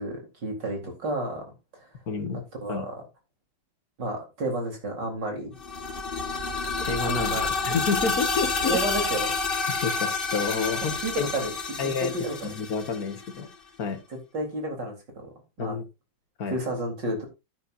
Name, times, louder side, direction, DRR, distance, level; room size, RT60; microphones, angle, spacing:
voice 1, 0.0-1.4 2.6-2.9 4.0-5.5 7.0-7.5 8.7-9.3 10.8-11.5 12.0-12.4 14.3-15.3 15.6-15.8 16.5-17.3, right 1 dB, 60° right, 3 dB, 4.7 m, -31 dB
voice 2, 2.1-2.4 2.7-2.9 6.8-8.8 9.7-11.3 11.8-13.5 13.8-14.0 15.6-15.8 16.4-16.6, left 5 dB, 50° left, 7 dB, 2.0 m, -29 dB
sound 1, 5.6-13.4, left 4 dB, 30° left, 1.6 m, -29 dB
11.0 x 10.5 x 2.7 m, 0.25 s
omnidirectional pair, 2.1 m